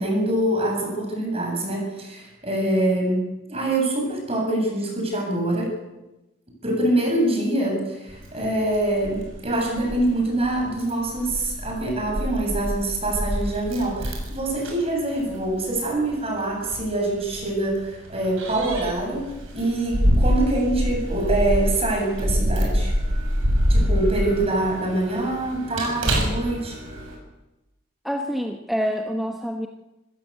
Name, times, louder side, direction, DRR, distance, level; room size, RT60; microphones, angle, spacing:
voice 1, 0.0-5.7 6.6-22.9 23.7-26.8, right 1 dB, 30° right, 1 dB, 7.6 m, -25 dB
Keys jangling, 8.1-27.1, equal, 90° right, 7.1 m, -26 dB
voice 2, 28.0-29.7, equal, ahead, 3 dB, 1.1 m, -26 dB
25.5 x 16.0 x 8.3 m, 1.0 s
head